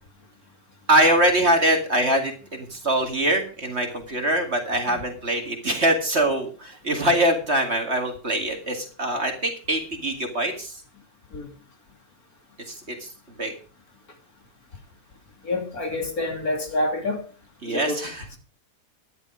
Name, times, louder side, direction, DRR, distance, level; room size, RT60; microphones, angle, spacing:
voice 1, 0.9-10.8 12.7-13.1 13.4-13.5 17.6-18.2, right 1 dB, 40° right, 2.4 m, -23 dB
voice 2, 15.4-17.2 17.6-18.0, left 2 dB, 55° left, 3.5 m, -27 dB
12.5 x 11.0 x 4.9 m
omnidirectional pair, 1.9 m